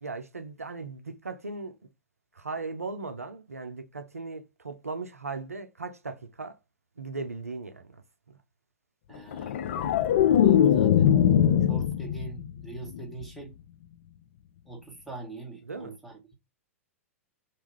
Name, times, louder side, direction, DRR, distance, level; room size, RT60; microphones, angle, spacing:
voice 1, 0.0-1.7 2.4-6.6 7.0-8.0 8.3-8.4 15.7-15.9, right 3 dB, 85° right, 0.4 m, -38 dB
voice 2, 9.1-9.6 10.4-11.1 11.6-13.5 14.7-16.3, right 3 dB, ahead, 1.0 m, -43 dB
sound 1, 9.3-12.5 12.8-13.2, left 10 dB, 55° left, 0.3 m, -21 dB
2.9 x 2.3 x 2.9 m
figure-of-eight pair, 100°, 8 cm